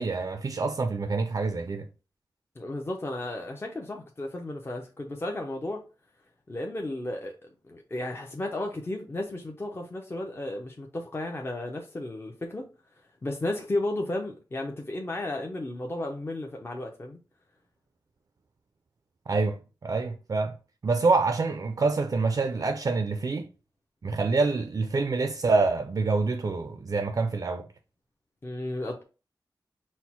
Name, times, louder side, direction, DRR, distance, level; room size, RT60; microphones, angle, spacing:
voice 1, 0.0-1.9 19.3-20.5 20.8-23.5 24.0-27.7, right 3 dB, 50° right, 0.3 m, -26 dB
voice 2, 2.6-5.8 6.5-12.7 13.2-17.2 28.4-29.0, left 1 dB, 30° left, 0.6 m, -34 dB
4.3 x 2.0 x 4.3 m
wide cardioid pair, 100°, 8 cm